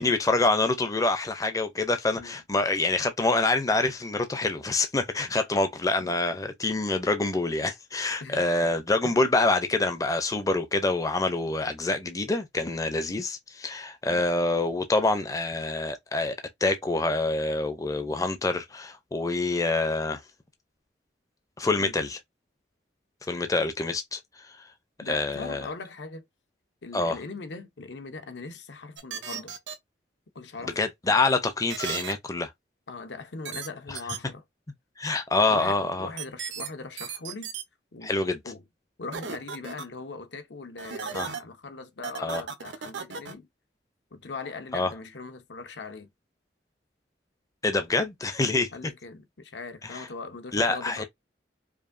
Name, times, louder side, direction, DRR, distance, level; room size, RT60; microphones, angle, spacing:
voice 1, 0.0-16.4 16.6-20.2 21.6-22.2 23.3-24.6 25.1-25.7 26.9-27.2 30.6-32.5 33.9-34.0 35.0-36.1 38.0-38.4 41.1-41.3 42.2-42.4 44.7-44.9 47.6-48.7 49.8-50.1 50.5-51.0, left 2 dB, 20° left, 0.5 m, -26 dB
voice 2, 25.0-26.2 26.8-29.5 30.3-30.8 31.1-31.2 32.9-34.4 35.5-37.5 37.9-38.1 38.4-38.6 39.0-43.5 44.1-46.1 48.7-51.0, left 3 dB, 75° left, 0.8 m, -40 dB
sound 1, 29.0-29.8 31.7-32.1 33.4-33.7 33.9-34.2 36.2-36.7 37.0-37.6 39.1-39.8 40.8-41.4 42.0-43.3, right 6 dB, 85° right, 0.7 m, -35 dB
4.8 x 2.6 x 2.5 m
head